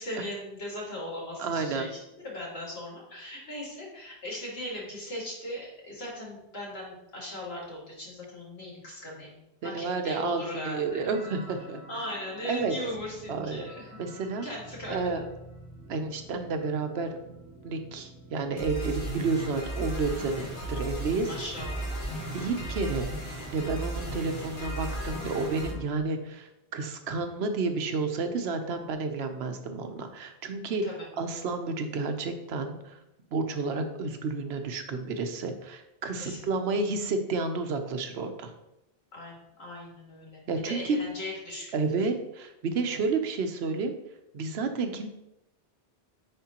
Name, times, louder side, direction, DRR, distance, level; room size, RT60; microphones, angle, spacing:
voice 1, 0.0-11.0 11.9-14.0 14.4-15.2 21.3-22.3 30.8-31.1 36.2-36.5 39.1-41.8, left 1 dB, 80° left, -3 dB, 2.2 m, -39 dB
voice 2, 1.4-1.9 9.6-11.8 12.5-12.7 13.3-13.7 14.0-14.5 14.9-15.2 15.9-17.2 17.6-21.3 22.3-23.1 23.5-30.8 31.2-33.0 33.3-38.5 40.5-41.0 41.7-44.0 44.3-45.1, right 4 dB, 85° right, 7 dB, 1.0 m, -31 dB
sound 1, 10.8-25.7, right 1 dB, 55° left, 1.8 m, -38 dB
9.6 x 3.6 x 2.9 m, 0.87 s
omnidirectional pair, 1.0 m